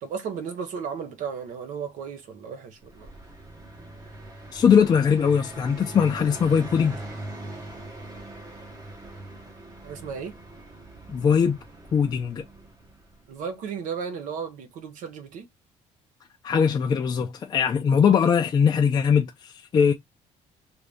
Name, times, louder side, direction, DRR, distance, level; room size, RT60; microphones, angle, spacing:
voice 1, 0.0-3.1 9.8-10.3 13.3-15.5, right 6 dB, 75° right, 0.9 m, -34 dB
Car passing by, 2.8-13.4, right 1 dB, 30° right, 0.9 m, -41 dB
voice 2, 4.5-7.0 11.1-11.6 11.9-12.4 16.4-19.9, left 7 dB, 30° left, 0.4 m, -21 dB
2.7 x 2.4 x 3.3 m
cardioid pair, 145°, 13 cm